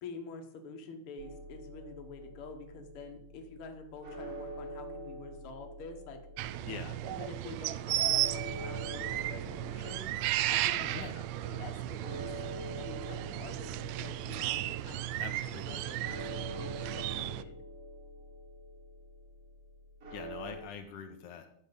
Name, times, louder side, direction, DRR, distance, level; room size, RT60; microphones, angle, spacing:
voice 1, 0.0-6.2 7.0-10.1 10.5-11.1 11.4-12.2 12.8-17.6, left 4 dB, 55° left, 4 dB, 2.0 m, -47 dB
sound 1, 1.2-20.6, equal, 45° right, 3.9 m, -46 dB
sound 2, 6.4-17.4, right 14 dB, 80° right, 1.6 m, -34 dB
voice 2, 6.7-7.0 10.9-11.2 15.2-15.8 20.1-21.5, left 7 dB, 80° left, 5 dB, 2.4 m, -44 dB
12.0 x 7.0 x 5.3 m, 0.70 s
omnidirectional pair, 3.6 m